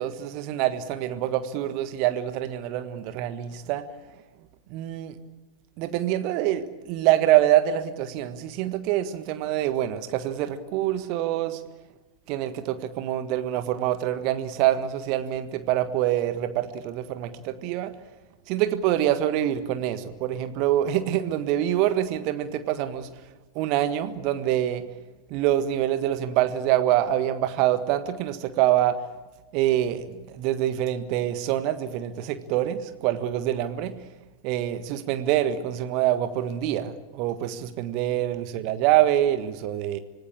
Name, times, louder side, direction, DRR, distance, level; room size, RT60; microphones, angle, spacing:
voice 1, 0.0-3.8 4.7-5.2 5.8-11.6 12.3-17.9 18.5-23.1 23.5-24.8 25.3-28.9 29.5-30.0 30.4-33.9 34.4-40.0, right 12 dB, 45° right, 10 dB, 1.6 m, -25 dB
26.0 x 18.5 x 8.8 m, 1.2 s
figure-of-eight pair, 90°, 0 cm